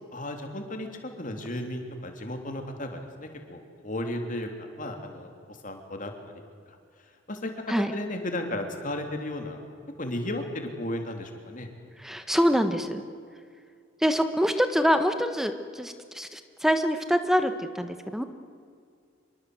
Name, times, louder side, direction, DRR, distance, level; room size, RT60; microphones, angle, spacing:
voice 1, 0.1-0.9 1.2-4.5 4.8-5.3 5.6-6.1 7.3-7.5 7.8-9.6 10.0-11.7, left 1 dB, 40° left, 4 dB, 3.3 m, -34 dB
voice 2, 12.0-13.0 14.0-18.2, equal, ahead, 8 dB, 1.4 m, -25 dB
26.5 x 23.0 x 8.0 m, 2.2 s
head